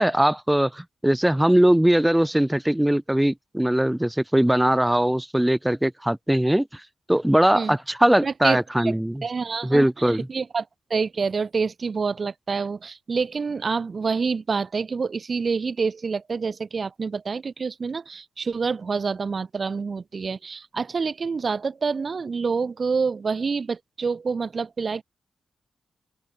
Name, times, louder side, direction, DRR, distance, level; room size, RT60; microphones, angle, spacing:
voice 1, 0.0-6.8 7.1-9.2 9.6-10.3, right 1 dB, 5° right, 3.6 m, -20 dB
voice 2, 8.2-8.9 9.2-25.0, right 5 dB, 40° right, 6.5 m, -27 dB
open air
wide cardioid pair, 115°, 0 cm